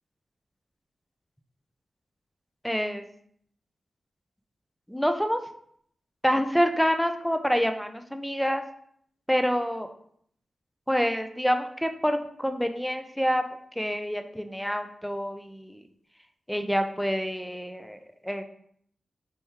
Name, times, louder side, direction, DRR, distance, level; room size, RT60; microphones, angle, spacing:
voice 1, 2.6-3.0 4.9-5.4 6.2-8.6 9.3-9.9 10.9-13.4 13.8-15.8 16.5-18.4, equal, ahead, 7 dB, 0.4 m, -27 dB
4.3 x 3.5 x 2.8 m, 0.66 s
wide cardioid pair, 95°, 0 cm